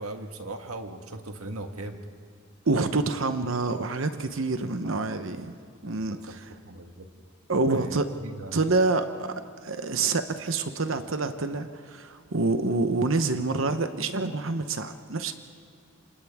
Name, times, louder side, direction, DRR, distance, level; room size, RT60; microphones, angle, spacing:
voice 1, 0.0-2.0 3.2-3.3 4.8-5.4 6.1-7.1 7.5-8.6, right 2 dB, 90° right, 5 dB, 1.6 m, -39 dB
voice 2, 2.7-5.5 5.8-6.4 7.5-8.1 8.5-9.3 9.6-15.3, right 3 dB, 65° right, 8 dB, 0.9 m, -27 dB
28.5 x 27.0 x 3.6 m, 2.3 s
head